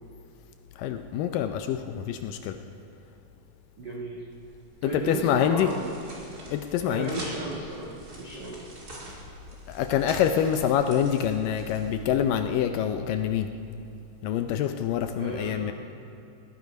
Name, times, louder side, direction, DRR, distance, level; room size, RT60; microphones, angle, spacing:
voice 1, 0.8-2.6 4.8-5.7 6.5-7.2 9.7-13.5 14.2-15.7, left 9 dB, 80° left, 7 dB, 2.1 m, -26 dB
voice 2, 3.8-4.3 4.8-6.0 6.9-8.6 15.2-15.7, right 2 dB, 60° right, -3 dB, 1.1 m, -35 dB
sound 1, 4.3-12.4, right 1 dB, 30° right, 2.1 m, -44 dB
18.5 x 10.5 x 5.2 m, 2.8 s
omnidirectional pair, 4.3 m